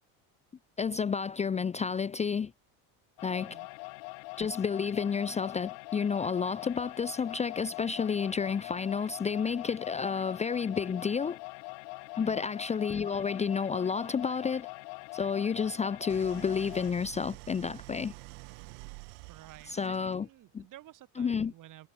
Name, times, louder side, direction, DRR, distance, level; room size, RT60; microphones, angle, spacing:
voice 1, 0.8-2.5 3.2-3.6 4.4-11.4 12.2-14.7 15.1-18.1 19.7-20.3 20.5-20.6 21.2-21.5, left 6 dB, 15° left, 0.6 m, -30 dB
sound 1, 3.2-16.9, left 37 dB, 80° left, 2.3 m, -43 dB
voice 2, 3.4-3.7 12.2-12.5 19.3-21.9, right 14 dB, 50° right, 5.7 m, -52 dB
Idling, 16.1-20.3, right 40 dB or more, 85° right, 3.1 m, -48 dB
cardioid pair, 145°, 40 cm